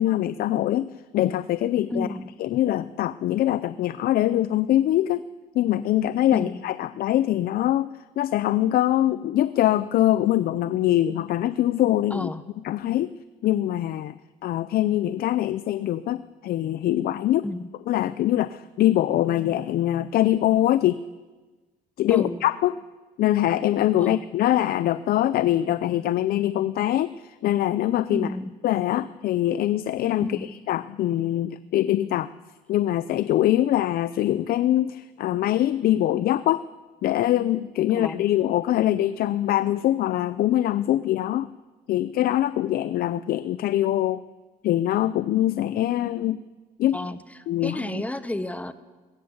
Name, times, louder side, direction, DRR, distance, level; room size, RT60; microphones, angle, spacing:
voice 1, 0.0-2.1 2.4-5.2 5.5-7.9 8.2-12.3 12.6-13.1 13.4-14.2 14.4-17.5 17.9-21.0 22.0-22.7 23.2-28.3 28.6-30.3 30.7-32.3 32.7-36.6 37.0-41.5 41.9-44.2 44.6-46.4 46.8-47.0 47.5-48.0, left 13 dB, 60° left, 15 dB, 0.6 m, -23 dB
voice 2, 1.9-2.3 6.3-6.6 12.1-12.4 17.4-17.7 22.1-22.5 24.0-24.2 28.1-28.6 30.2-30.5 37.9-38.2 46.9-48.7, left 1 dB, 10° left, 12 dB, 1.1 m, -31 dB
20.0 x 17.5 x 8.0 m, 1.3 s
cardioid pair, 110°, 17 cm